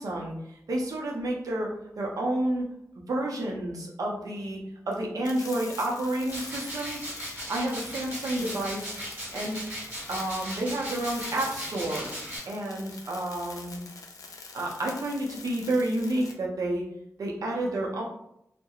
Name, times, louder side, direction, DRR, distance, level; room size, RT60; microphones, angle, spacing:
voice 1, 0.0-1.7 2.0-2.7 3.1-4.6 4.9-7.0 7.5-9.0 9.3-9.6 10.1-12.1 12.5-13.8 14.5-16.8 17.2-18.0, right 1 dB, 80° right, -1 dB, 0.6 m, -30 dB
sound 1, 5.2-16.3, left 4 dB, 75° left, 0.4 m, -45 dB
sound 2, 6.3-12.4, equal, 35° right, 1.2 m, -38 dB
2.3 x 2.1 x 2.9 m, 0.78 s
wide cardioid pair, 100°, 6 cm